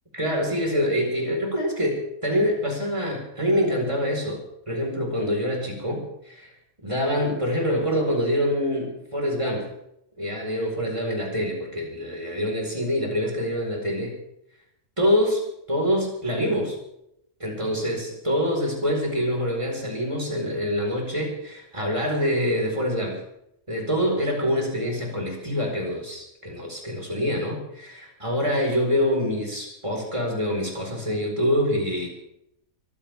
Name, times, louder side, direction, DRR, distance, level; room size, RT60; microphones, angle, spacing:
voice 1, 0.1-6.5 6.8-9.7 10.2-14.2 15.0-15.4 15.7-16.7 17.4-23.2 23.7-32.1, equal, 20° right, 0 dB, 4.6 m, -25 dB
23.5 x 15.0 x 3.6 m, 0.79 s
omnidirectional pair, 1.6 m